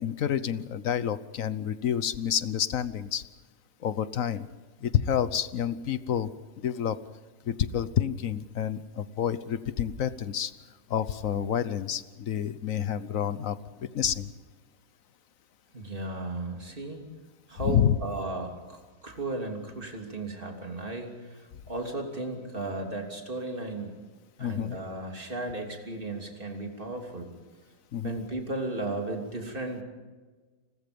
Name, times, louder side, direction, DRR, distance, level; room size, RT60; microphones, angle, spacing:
voice 1, 0.0-3.2 3.8-4.5 4.8-6.3 6.6-7.0 7.5-10.5 10.9-14.3 17.6-18.0 24.4-24.8 27.9-28.2, left 9 dB, 70° left, 14 dB, 1.3 m, -28 dB
voice 2, 15.7-17.0 17.5-24.0 24.4-27.3 28.0-29.8, right 2 dB, 40° right, 2 dB, 3.4 m, -35 dB
29.5 x 21.0 x 5.3 m, 1.3 s
omnidirectional pair, 1.5 m